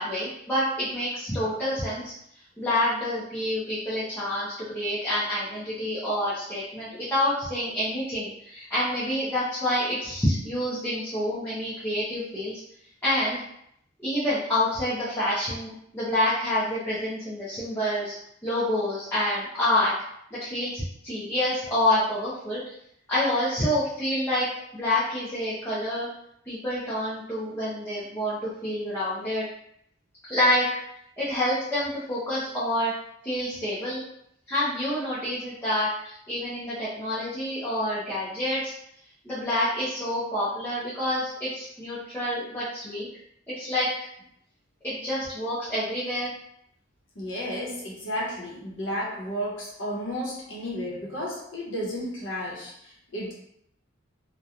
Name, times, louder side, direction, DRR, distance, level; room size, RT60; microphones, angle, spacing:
voice 1, 0.0-2.1 2.6-12.6 13.0-13.4 14.0-18.2 18.4-19.9 20.3-22.7 23.1-24.5 24.7-26.1 26.5-29.5 30.2-30.7 31.2-32.9 33.2-34.0 34.5-38.7 39.2-43.1 43.5-43.9 44.8-46.3, left 1 dB, 10° left, -11 dB, 0.6 m, -27 dB
voice 2, 47.1-53.3, equal, 70° left, -6 dB, 0.9 m, -33 dB
2.9 x 2.2 x 2.4 m, 0.72 s
head